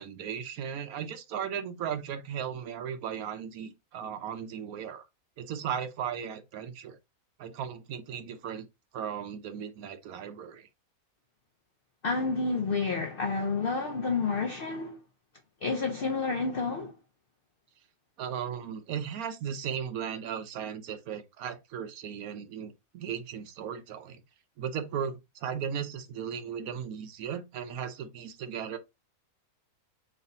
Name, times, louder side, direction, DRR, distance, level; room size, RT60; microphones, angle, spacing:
voice 1, 0.0-5.1 5.4-7.0 7.4-8.7 8.9-10.7 18.2-24.2 24.6-28.8, right 8 dB, 70° right, 1.1 m, -36 dB
voice 2, 12.0-15.0 15.6-16.9, left 4 dB, 75° left, 0.5 m, -29 dB
3.2 x 2.6 x 3.9 m
omnidirectional pair, 1.6 m